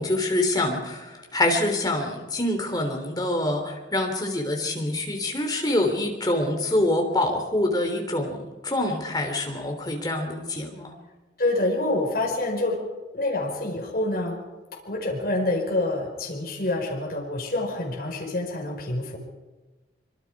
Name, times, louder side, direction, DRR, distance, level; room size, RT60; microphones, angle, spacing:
voice 1, 0.0-10.9, left 1 dB, 20° left, 3 dB, 3.3 m, -26 dB
voice 2, 11.4-12.8 13.1-14.4 14.8-19.2, left 2 dB, 50° left, -2 dB, 5.0 m, -27 dB
25.0 x 24.0 x 4.9 m, 1.2 s
head